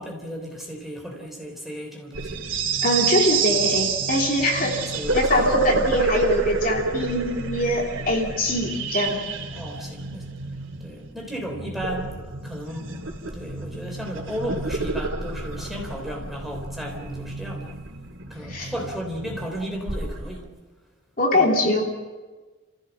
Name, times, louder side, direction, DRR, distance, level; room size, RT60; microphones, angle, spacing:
voice 1, 0.0-2.4 4.6-5.7 9.5-10.3 10.8-12.2 12.4-17.7 18.3-20.5 21.3-21.5, equal, ahead, 0 dB, 3.5 m, -34 dB
sound 1, 2.1-20.4, right 4 dB, 80° right, 2.4 m, -29 dB
voice 2, 2.8-4.9 5.1-9.2 18.5-18.7 21.2-21.8, left 1 dB, 45° left, 0 dB, 3.2 m, -23 dB
29.5 x 15.5 x 7.2 m, 1.3 s
head